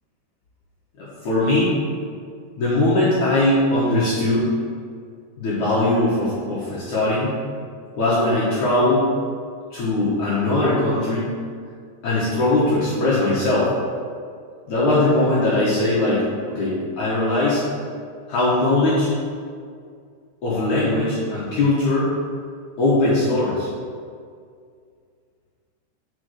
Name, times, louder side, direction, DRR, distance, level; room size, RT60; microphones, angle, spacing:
voice 1, 1.0-1.7 2.6-4.5 5.4-7.3 8.0-9.1 9.7-11.3 12.0-13.7 14.7-17.6 18.3-19.1 20.4-22.1 22.8-23.7, left 2 dB, 65° left, -8 dB, 1.9 m, -20 dB
6.2 x 5.0 x 6.5 m, 2.2 s
omnidirectional pair, 5.2 m